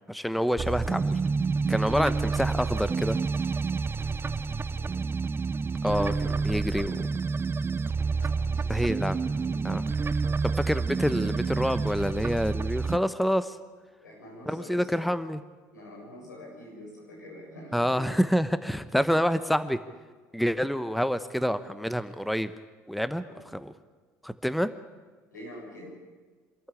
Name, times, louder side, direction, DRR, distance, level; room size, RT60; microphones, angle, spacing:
voice 1, 0.1-1.2 1.7-3.2 5.8-6.9 8.7-9.2 9.6-9.8 10.5-13.6 14.5-15.4 17.7-19.8 20.3-22.5 22.9-23.2 23.5-23.7 24.2-24.7, equal, ahead, 13 dB, 1.0 m, -27 dB
sound 1, 0.6-13.0, right 4 dB, 25° right, 0.7 m, -29 dB
voice 2, 4.3-4.9 8.1-9.9 14.0-15.1 15.7-18.1 23.2-23.4 25.3-26.0, left 1 dB, 90° left, -2 dB, 7.0 m, -46 dB
26.0 x 14.0 x 8.6 m, 1.4 s
hypercardioid pair, 65°, 10 cm